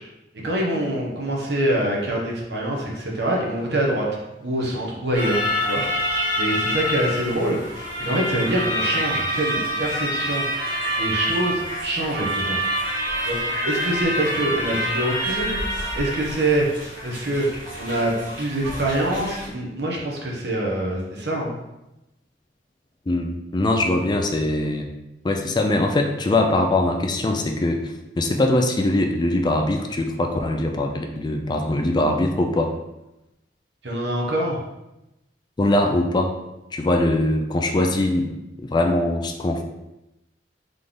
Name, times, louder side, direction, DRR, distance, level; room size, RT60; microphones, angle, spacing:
voice 1, 0.4-4.1 4.4-5.4 5.7-6.0 6.4-7.6 8.0-10.4 11.0-12.6 13.2-15.6 15.9-16.7 17.0-17.4 17.8-21.6 33.8-34.6, right 1 dB, 65° right, -2 dB, 1.1 m, -25 dB
sound 1, 5.1-19.5, equal, 50° right, 1.4 m, -27 dB
voice 2, 23.1-24.9 25.2-32.7 35.6-36.3 36.7-39.6, left 1 dB, 25° left, 4 dB, 0.4 m, -22 dB
3.8 x 3.2 x 3.8 m, 0.93 s
head